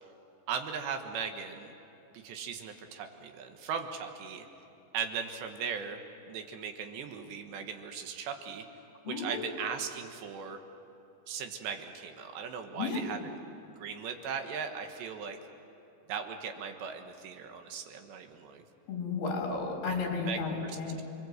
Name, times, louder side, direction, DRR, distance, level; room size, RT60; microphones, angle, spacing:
voice 1, 0.5-1.7 2.1-4.5 4.9-6.0 6.3-8.7 9.1-10.6 11.3-13.2 13.8-15.4 16.1-18.6 20.2-21.0, right 6 dB, 75° right, 5 dB, 3.4 m, -38 dB
voice 2, 9.1-9.4 12.8-13.0 18.9-21.0, left 4 dB, 60° left, 0 dB, 5.8 m, -33 dB
30.0 x 21.5 x 7.9 m, 2.9 s
omnidirectional pair, 5.3 m